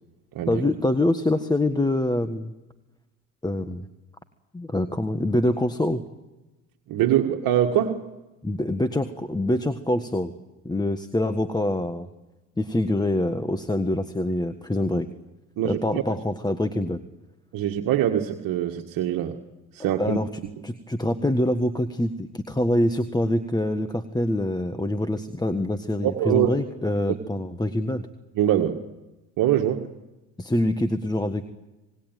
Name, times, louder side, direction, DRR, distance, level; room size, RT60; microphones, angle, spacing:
voice 1, 0.5-2.5 3.4-3.9 4.5-6.0 8.4-10.3 10.6-12.1 12.6-15.1 15.6-17.0 20.0-20.3 20.6-28.1 30.4-31.4, left 1 dB, 10° left, 9 dB, 1.6 m, -25 dB
voice 2, 6.9-8.0 15.6-16.0 17.5-19.4 19.7-20.2 26.0-26.5 28.4-28.8 29.4-29.9, right 11 dB, 60° right, 3 dB, 1.9 m, -23 dB
26.5 x 20.0 x 9.2 m, 1.0 s
hypercardioid pair, 70°, 38 cm